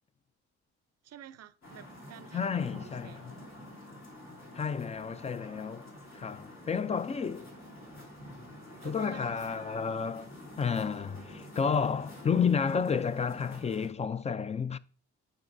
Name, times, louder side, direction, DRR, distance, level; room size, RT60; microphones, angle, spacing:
voice 1, 1.0-3.2 6.7-6.8 8.8-9.9, right 10 dB, 55° right, 0.5 m, -50 dB
sound 1, 1.6-13.9, left 1 dB, 65° left, 3.1 m, -48 dB
voice 2, 2.3-3.2 4.5-7.5 8.8-10.3 10.6-14.8, left 6 dB, 25° left, 0.3 m, -31 dB
9.0 x 6.2 x 2.6 m
cardioid pair, 90°, 30 cm